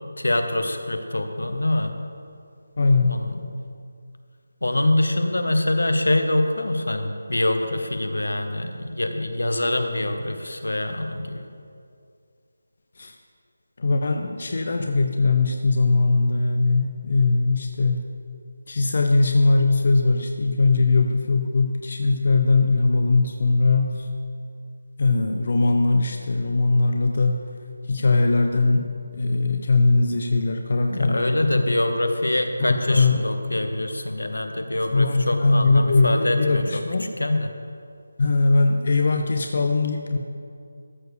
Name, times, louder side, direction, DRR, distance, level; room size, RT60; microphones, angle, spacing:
voice 1, 0.2-1.9 3.1-3.4 4.6-11.5 30.9-36.8 37.2-37.5, left 1 dB, 80° left, 6 dB, 1.1 m, -24 dB
voice 2, 2.8-3.2 13.0-13.2 13.8-18.0 18.7-24.1 25.0-27.4 27.9-31.8 32.6-33.3 34.9-37.1 38.2-40.2, left 3 dB, 50° left, 4 dB, 0.7 m, -20 dB
13.5 x 4.6 x 6.9 m, 2.4 s
figure-of-eight pair, 160°, 0 cm